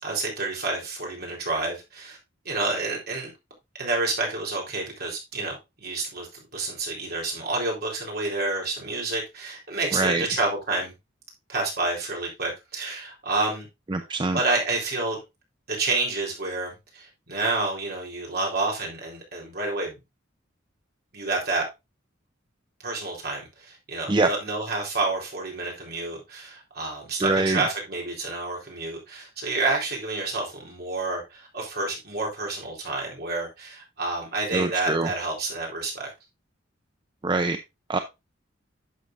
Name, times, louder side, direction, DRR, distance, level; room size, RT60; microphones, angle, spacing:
voice 1, 0.0-2.2 2.4-3.3 3.8-6.3 6.5-10.9 11.5-13.7 14.3-15.2 15.7-20.0 21.1-21.6 22.8-36.1, right 3 dB, 55° right, 4.0 m, -29 dB
voice 2, 9.9-10.2 13.9-14.4 24.1-24.3 27.2-27.6 34.5-35.1 37.2-37.6 37.9-38.0, right 3 dB, 25° right, 0.5 m, -23 dB
11.0 x 6.8 x 2.6 m
head